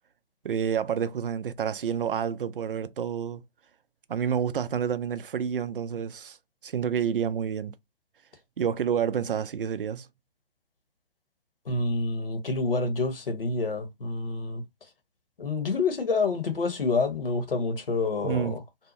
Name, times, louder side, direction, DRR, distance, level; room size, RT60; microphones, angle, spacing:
voice 1, 0.4-3.4 4.1-6.4 6.6-7.8 8.6-10.1 18.2-18.6, right 8 dB, 65° right, 0.4 m, -29 dB
voice 2, 11.6-14.6 15.4-18.6, left 3 dB, 70° left, 1.0 m, -28 dB
2.7 x 2.0 x 2.6 m
figure-of-eight pair, 140°, 29 cm